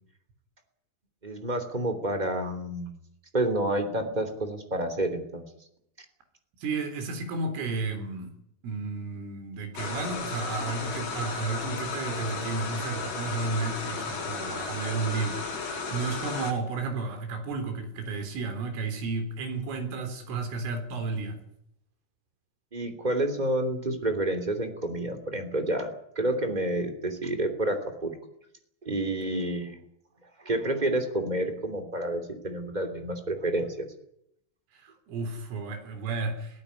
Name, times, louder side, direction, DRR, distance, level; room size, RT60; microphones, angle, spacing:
voice 1, 1.2-2.9 3.3-5.4 22.7-28.1 28.8-29.8 30.4-33.7, right 1 dB, 15° right, 7 dB, 1.6 m, -29 dB
voice 2, 6.6-8.3 8.6-21.4 34.8-36.6, right 4 dB, 75° right, 7 dB, 6.2 m, -32 dB
sound 1, 9.8-16.5, left 4 dB, 90° left, 8.2 m, -34 dB
21.0 x 16.5 x 9.7 m, 0.74 s
omnidirectional pair, 5.8 m